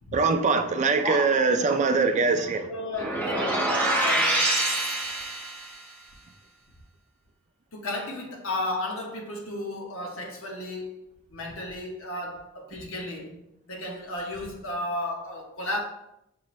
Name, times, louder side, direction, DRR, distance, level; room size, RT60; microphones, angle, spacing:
voice 1, 0.1-2.6, right 4 dB, 35° right, 0.3 m, -22 dB
voice 2, 1.0-2.1 2.6-4.6 7.7-15.8, left 1 dB, 65° left, 0.8 m, -34 dB
sound 1, 2.9-5.7, right 1 dB, 10° left, 1.0 m, -25 dB
6.3 x 2.5 x 3.0 m
head